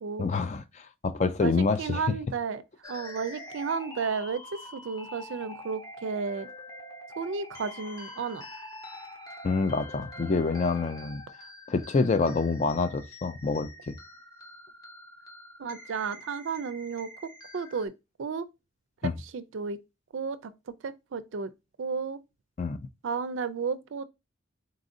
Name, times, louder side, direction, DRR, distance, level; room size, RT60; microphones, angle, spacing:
voice 1, 0.2-2.0 9.4-11.2 11.7-14.0 19.0-19.1 22.6-22.8, left 4 dB, 35° left, 0.3 m, -27 dB
voice 2, 1.4-2.6 2.9-4.4 4.7-6.5 7.2-8.5 12.2-12.4 15.6-17.9 18.2-18.5 19.0-19.8 20.1-20.5 20.8-21.5 21.8-22.2 23.0-24.0, right 5 dB, 65° right, 0.4 m, -33 dB
sound 1, 2.8-17.9, left 1 dB, 20° left, 0.7 m, -46 dB
4.0 x 2.6 x 3.7 m
head